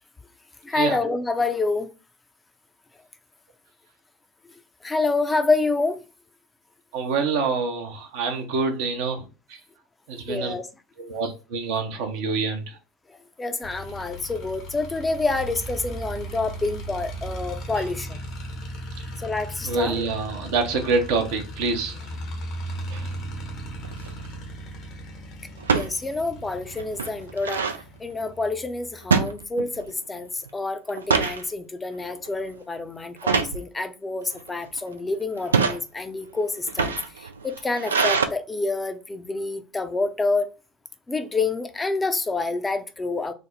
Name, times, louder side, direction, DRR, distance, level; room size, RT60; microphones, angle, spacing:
voice 1, 0.6-1.9 4.8-6.0 10.3-10.7 13.1-18.2 19.2-20.0 25.7-27.6 28.0-40.5 41.1-43.3, left 3 dB, 15° left, 0.5 m, -27 dB
voice 2, 6.9-9.2 10.1-10.5 11.0-12.6 19.6-22.0 22.9-23.1, right 4 dB, 65° right, 0.7 m, -26 dB
sound 1, 13.6-29.2, right 1 dB, 50° left, 0.9 m, -37 dB
sound 2, 23.8-24.2 25.6-25.9 26.4-26.5 26.8-27.8 29.1-29.9 30.2-30.5 30.9-31.4 32.0-32.3 33.2-33.6 34.3-34.8 35.4-35.8 36.6-38.3, right 5 dB, 80° right, 0.3 m, -24 dB
3.4 x 2.0 x 3.8 m
figure-of-eight pair, 70°, 0 cm